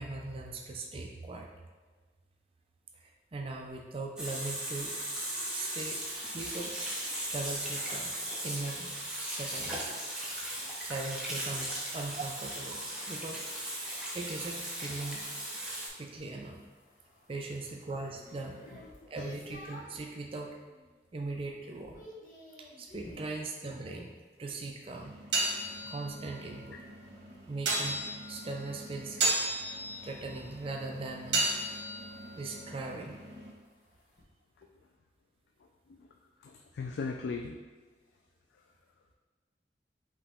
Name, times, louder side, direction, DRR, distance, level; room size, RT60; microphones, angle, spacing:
voice 1, 0.0-1.5 3.0-4.9 5.5-6.0 6.3-6.8 7.2-8.2 8.4-8.9 9.2-10.0 10.4-10.5 10.8-12.8 13.1-13.4 14.1-15.2 16.0-16.6 17.3-18.6 19.1-20.5 21.1-21.9 22.6-24.1 24.4-25.2 25.8-26.8 27.5-29.2 30.0-31.5 32.4-33.2, right 3 dB, 30° right, 2 dB, 0.4 m, -39 dB
Water tap faucet / Sink (filling or washing), 4.2-15.9, right 1 dB, 5° right, 0.7 m, -37 dB
sound 1, 16.0-20.1 20.6-21.0 21.3-23.4 25.8-34.2, left 1 dB, 45° left, 0.9 m, -55 dB
sound 2, 24.9-33.5, right 2 dB, 75° right, 1.0 m, -35 dB
voice 2, 36.4-37.6, left 4 dB, 80° left, 2 dB, 0.3 m, -38 dB
5.2 x 2.9 x 3.5 m, 1.4 s
head